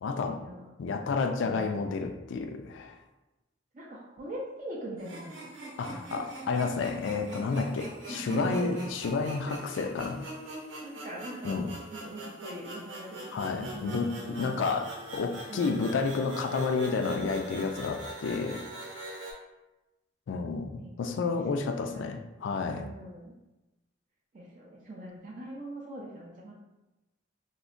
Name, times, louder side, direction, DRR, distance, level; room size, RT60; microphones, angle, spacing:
voice 1, 0.0-0.4 0.8-3.0 5.8-10.2 11.4-11.7 13.3-18.6 20.3-22.8, left 4 dB, 70° left, 6 dB, 0.3 m, -30 dB
voice 2, 1.4-1.8 3.7-5.3 5.9-6.2 7.6-8.7 9.5-9.8 10.8-14.5 15.5-15.9 20.8-21.4 21.9-22.3 22.7-23.3 24.3-26.5, right 1 dB, 40° right, -4 dB, 0.4 m, -42 dB
sound 1, 5.0-19.3, right 2 dB, 70° right, 0.7 m, -42 dB
3.8 x 2.1 x 2.4 m, 1.0 s
head